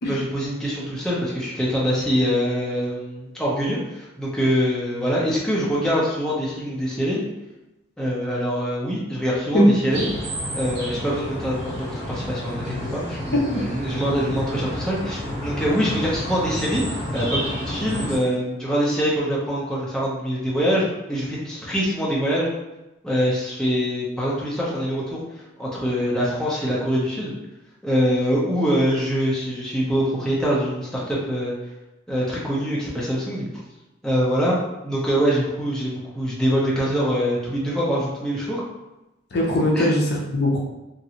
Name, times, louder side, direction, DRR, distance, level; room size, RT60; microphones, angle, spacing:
voice 1, 0.1-7.2 8.0-10.0 10.5-22.5 23.0-25.2 25.6-27.3 27.8-31.5 32.1-33.5 34.0-38.6 39.8-39.9, equal, 5° left, -7 dB, 0.6 m, -24 dB
sound 1, 9.9-18.2, equal, 30° right, 1.5 m, -30 dB
voice 2, 13.3-13.6 39.3-40.6, equal, 55° left, -2 dB, 0.6 m, -19 dB
2.9 x 2.6 x 2.8 m, 0.98 s
head